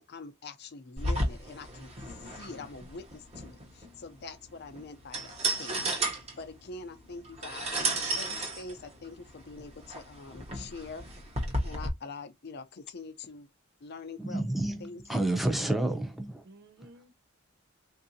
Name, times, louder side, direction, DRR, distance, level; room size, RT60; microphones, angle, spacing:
voice 1, 0.0-5.9 6.4-7.7 8.2-11.0 11.6-13.5 13.8-14.4 14.8-15.2, left 4 dB, 55° left, 0.6 m, -44 dB
sound 1, 1.0-11.9, right 2 dB, 35° right, 0.9 m, -34 dB
voice 2, 14.2-16.4, right 1 dB, ahead, 0.6 m, -30 dB
voice 3, 15.1-16.1 16.4-17.1, right 3 dB, 60° right, 0.5 m, -50 dB
3.6 x 2.6 x 2.7 m
head